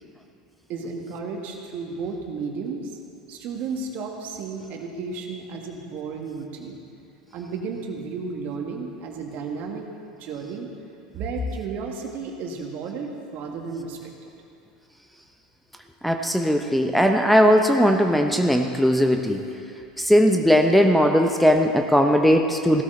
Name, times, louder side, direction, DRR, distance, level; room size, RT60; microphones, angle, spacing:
voice 1, 0.7-3.0 3.3-6.8 7.3-9.9 10.2-10.7 11.1-14.3, right 4 dB, 50° right, 2 dB, 1.9 m, -33 dB
voice 2, 16.0-19.4 20.0-22.8, equal, ahead, 4 dB, 0.8 m, -18 dB
16.0 x 12.5 x 4.0 m, 2.6 s
hypercardioid pair, 85°, 4 cm